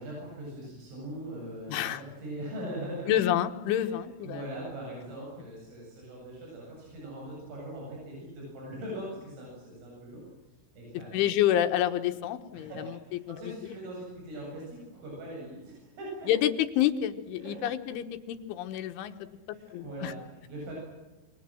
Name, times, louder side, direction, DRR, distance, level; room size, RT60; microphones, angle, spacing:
voice 1, 0.0-3.2 3.7-3.9 4.2-11.2 12.5-16.3 17.4-17.6 19.5-20.7, right 1 dB, 85° right, -3 dB, 11.0 m, -41 dB
voice 2, 1.7-2.0 3.1-4.4 11.1-12.9 13.6-13.7 16.3-19.1 19.7-20.1, left 11 dB, 75° left, 8 dB, 3.6 m, -28 dB
28.0 x 24.0 x 7.7 m, 1.1 s
omnidirectional pair, 5.8 m